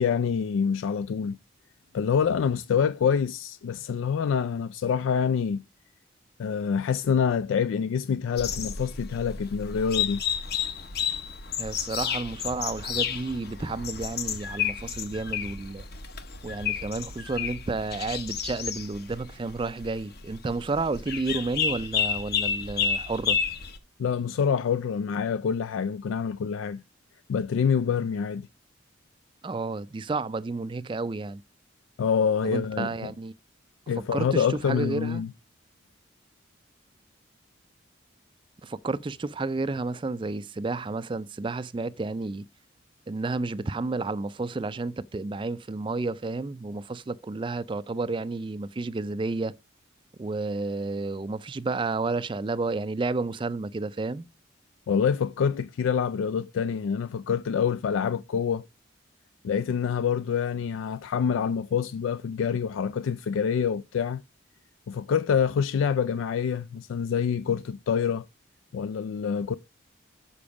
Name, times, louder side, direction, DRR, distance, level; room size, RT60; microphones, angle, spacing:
voice 1, 0.0-1.4 1.9-5.7 6.4-10.2 24.0-26.8 27.3-28.5 32.0-33.1 33.9-35.3 54.9-58.6 59.4-64.2 64.9-68.2 68.7-69.6, left 7 dB, 80° left, 0.3 m, -26 dB
sound 1, 8.4-23.8, left 7 dB, 50° left, 0.9 m, -31 dB
voice 2, 11.6-15.8 16.4-23.4 29.4-31.4 32.4-33.3 34.0-35.2 38.6-42.5 43.1-49.5 50.2-54.3, right 3 dB, 25° right, 0.3 m, -31 dB
7.0 x 5.9 x 4.8 m
head